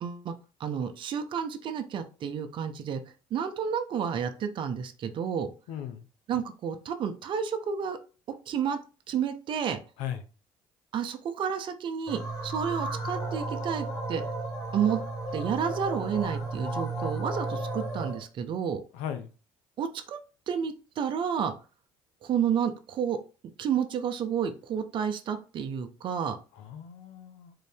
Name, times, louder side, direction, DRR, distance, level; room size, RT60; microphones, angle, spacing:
voice 1, 0.0-0.3 0.6-3.0 3.3-5.5 6.3-8.0 8.5-8.8 9.1-9.8 10.9-14.2 14.7-15.0 15.3-18.8 19.8-20.2 20.5-21.5 22.2-23.2 23.6-26.4, right 7 dB, 50° right, 8 dB, 0.6 m, -30 dB
voice 2, 5.7-6.1 10.0-10.2 18.9-19.3 26.5-27.5, left 9 dB, 80° left, 9 dB, 0.6 m, -37 dB
sound 1, 12.1-18.2, right 2 dB, 35° left, 1.3 m, -33 dB
3.8 x 2.6 x 3.4 m, 0.34 s
supercardioid pair, 80°, 10 cm